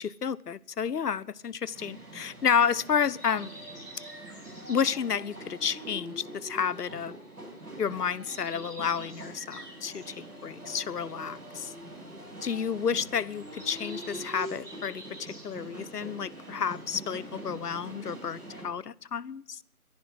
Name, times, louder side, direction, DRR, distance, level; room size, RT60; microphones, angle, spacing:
voice 1, 0.0-3.5 4.7-7.1 7.8-11.7 12.4-19.6, left 7 dB, 90° left, 0.7 m, -31 dB
sound 1, 1.4-7.3 7.6-16.3 16.5-17.3, right 1 dB, ahead, 5.1 m, -50 dB
sound 2, 1.7-18.6, right 1 dB, 75° right, 6.4 m, -44 dB
11.0 x 10.5 x 9.4 m
figure-of-eight pair, 180°, 45 cm